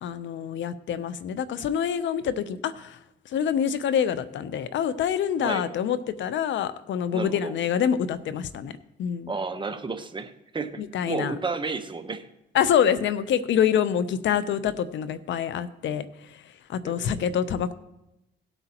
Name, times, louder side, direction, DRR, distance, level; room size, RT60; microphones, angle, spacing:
voice 1, 0.0-3.0 3.3-8.7 9.0-9.3 10.8-11.4 12.5-16.4 16.7-17.7, left 8 dB, 70° left, 14 dB, 0.7 m, -26 dB
voice 2, 7.1-7.5 9.3-10.8 11.1-12.3 16.8-17.2, right 4 dB, 25° right, 8 dB, 1.0 m, -32 dB
17.0 x 7.9 x 2.9 m, 0.90 s
cardioid pair, 90°, 20 cm